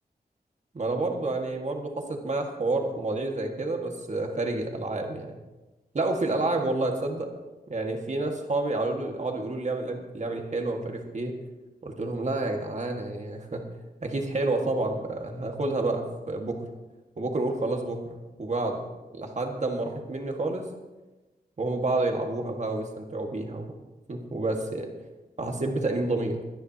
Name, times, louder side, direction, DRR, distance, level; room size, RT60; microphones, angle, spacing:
voice 1, 0.7-5.4 5.9-7.3 7.7-11.4 11.8-13.6 14.0-16.6 17.2-18.0 18.4-20.7 21.6-23.7 24.1-24.9 25.4-26.4, right 2 dB, 45° right, 2 dB, 1.8 m, -29 dB
22.5 x 10.5 x 2.9 m, 1.1 s
wide cardioid pair, 110°, 16 cm